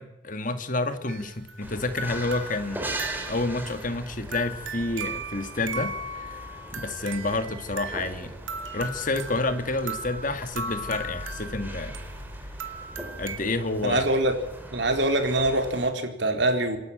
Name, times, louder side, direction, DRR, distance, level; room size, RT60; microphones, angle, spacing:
voice 1, 0.0-2.9 3.3-8.3 8.7-12.0 13.2-14.0, left 2 dB, 45° left, 9 dB, 2.1 m, -29 dB
sound 1, 1.1-13.4, right 2 dB, 80° right, 2.6 m, -38 dB
sound 2, 1.6-15.9, right 1 dB, 10° right, 3.5 m, -40 dB
voice 2, 13.8-14.3 14.7-16.8, right 2 dB, 60° right, 5 dB, 4.1 m, -24 dB
27.5 x 12.0 x 9.0 m, 0.90 s
head